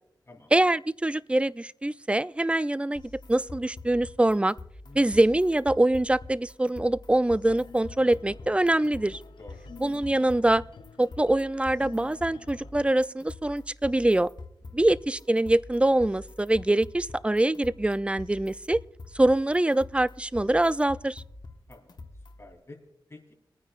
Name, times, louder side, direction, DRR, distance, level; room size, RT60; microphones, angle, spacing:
voice 1, 0.5-3.0 3.3-4.5 4.9-9.2 9.8-10.6 11.0-14.3 14.7-18.8 19.1-21.2, right 1 dB, 15° right, 0.4 m, -24 dB
sound 1, 3.0-22.5, left 2 dB, 60° left, 1.3 m, -45 dB
sound 2, 7.4-12.7, left 6 dB, 85° left, 0.6 m, -50 dB
voice 2, 21.7-22.1 22.4-22.8 23.1-23.3, left 2 dB, 30° left, 3.3 m, -49 dB
28.0 x 9.5 x 2.5 m
cardioid pair, 60°, 8 cm